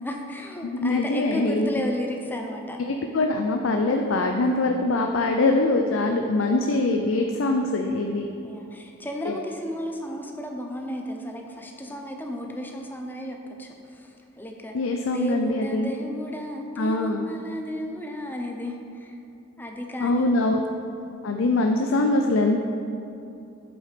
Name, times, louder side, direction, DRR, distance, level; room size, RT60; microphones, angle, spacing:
voice 1, 0.0-2.8 8.4-14.8 15.0-19.2 19.6-20.4, equal, 10° left, 2 dB, 0.7 m, -33 dB
voice 2, 0.6-1.9 2.9-8.3 9.2-9.3 14.7-15.9 16.8-17.3 20.0-20.6 21.2-22.6, left 2 dB, 80° left, 3 dB, 0.5 m, -23 dB
8.3 x 5.5 x 5.1 m, 2.8 s
head